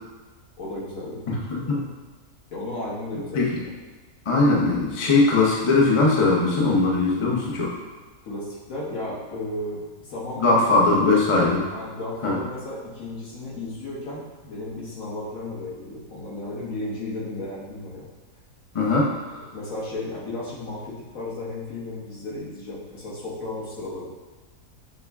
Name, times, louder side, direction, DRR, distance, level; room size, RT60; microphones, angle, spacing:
voice 1, 0.6-1.2 1.5-1.8 2.5-3.4 8.2-10.6 10.9-11.3 11.7-18.0 19.0-19.1 19.5-24.1, left 2 dB, 60° left, -6 dB, 1.6 m, -34 dB
voice 2, 1.3-1.9 3.3-3.6 4.3-7.8 10.4-11.6 12.2-12.4 18.7-19.4, left 3 dB, 40° left, -4 dB, 0.4 m, -20 dB
6.7 x 2.3 x 3.4 m, 1.3 s
omnidirectional pair, 1.7 m